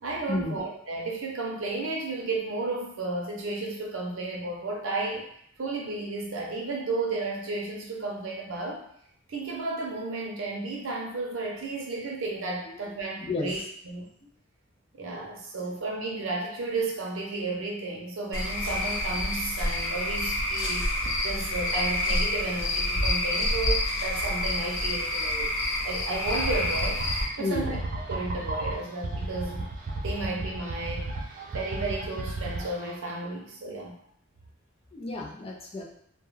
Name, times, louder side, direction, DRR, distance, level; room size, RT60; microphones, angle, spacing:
voice 1, 0.0-5.3 5.6-8.8 9.3-14.1 14.9-25.5 25.8-27.0 27.4-29.7 30.0-34.0, right 3 dB, 80° right, -1 dB, 0.6 m, -33 dB
Cricket / Frog, 18.3-27.2, left 1 dB, 85° left, 0.6 m, -28 dB
sound 1, 26.3-32.9, right 2 dB, 40° right, 0.3 m, -34 dB
voice 2, 27.4-27.7 34.9-35.8, left 2 dB, 30° left, -2 dB, 0.4 m, -31 dB
2.3 x 2.1 x 3.1 m, 0.69 s
head